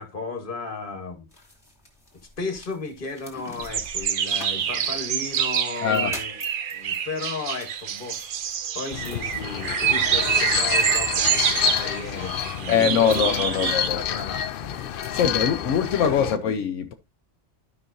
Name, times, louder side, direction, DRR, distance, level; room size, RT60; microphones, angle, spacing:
voice 1, 0.0-1.5 2.4-6.4 6.7-8.3 8.7-13.2 13.5-15.0 15.3-15.7, left 3 dB, 45° left, 1.6 m, -35 dB
sound 1, 1.3-16.2, left 1 dB, 20° left, 2.3 m, -47 dB
sound 2, 3.6-13.9, right 8 dB, 55° right, 0.7 m, -26 dB
voice 2, 5.8-6.2 12.7-14.0 15.1-16.9, left 7 dB, 80° left, 1.0 m, -22 dB
sound 3, 8.9-16.4, left 10 dB, 60° left, 0.6 m, -29 dB
12.5 x 5.5 x 2.6 m
omnidirectional pair, 1.3 m